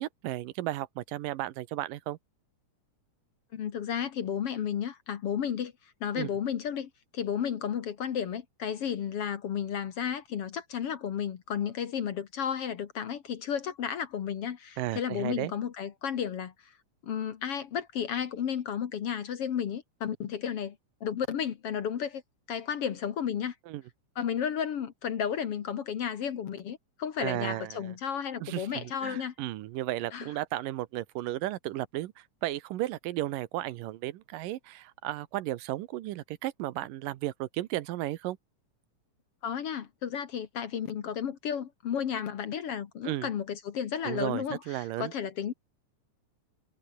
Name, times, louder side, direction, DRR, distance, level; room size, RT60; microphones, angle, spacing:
voice 1, 0.0-2.2 6.2-6.3 14.8-15.5 23.7-23.8 27.2-28.0 28.4-38.4 43.0-43.3 44.0-45.1, right 15 dB, 90° right, 2.7 m, -34 dB
voice 2, 3.5-5.7 6.0-16.7 17.0-22.2 22.5-23.6 24.2-29.3 30.1-30.3 39.4-45.5, left 8 dB, 55° left, 2.0 m, -33 dB
omnidirectional pair, 3.8 m